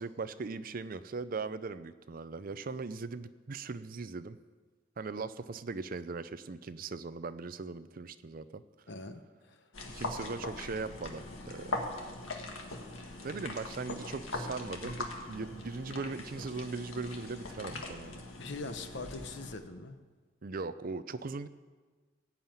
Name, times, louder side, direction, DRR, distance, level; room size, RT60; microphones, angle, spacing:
voice 1, 0.0-4.4 5.0-8.6 9.9-11.8 13.2-18.2 20.4-21.5, right 4 dB, 45° right, 13 dB, 0.5 m, -39 dB
voice 2, 8.9-9.7 18.4-20.0, left 3 dB, 60° left, 9 dB, 0.9 m, -42 dB
sound 1, 9.7-19.5, left 2 dB, 85° left, 1.7 m, -41 dB
17.0 x 5.7 x 8.9 m, 1.4 s
head